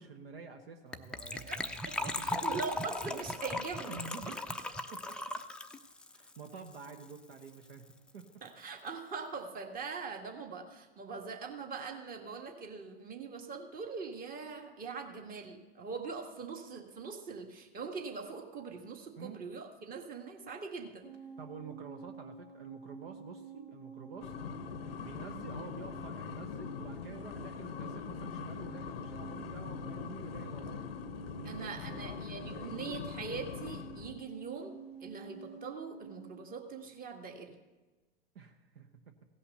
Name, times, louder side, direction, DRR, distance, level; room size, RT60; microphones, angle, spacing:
voice 1, 0.0-2.5 3.9-4.4 4.9-5.2 6.1-8.4 19.2-19.4 21.4-24.7 25.0-30.8 31.3-32.9 38.3-39.1, right 5 dB, 75° right, 7 dB, 1.2 m, -49 dB
Gurgling / Trickle dribble / Fill (with liquid), 0.9-7.2 7.4-7.5 7.7-7.9 8.2-8.3, left 2 dB, 5° left, 0.5 m, -38 dB
voice 2, 1.9-4.0 8.4-21.0 31.4-34.7 35.0-37.5, right 5 dB, 30° right, 4 dB, 1.6 m, -42 dB
sound 1, 21.0-36.4, right 5 dB, 90° right, 2.1 m, -50 dB
sound 2, 24.2-34.3, left 8 dB, 75° left, 0.7 m, -43 dB
16.5 x 5.7 x 6.7 m, 1.2 s
hypercardioid pair, 95°, 30 cm